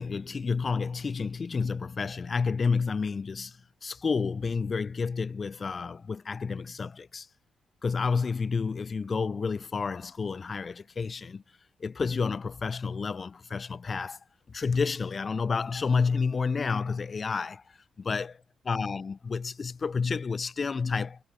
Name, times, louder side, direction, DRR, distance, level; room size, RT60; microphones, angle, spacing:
voice 1, 0.0-7.3 7.8-11.4 11.8-14.2 14.5-21.2, left 5 dB, 45° left, 1.8 m, -30 dB
cardioid pair, 80°, 0 cm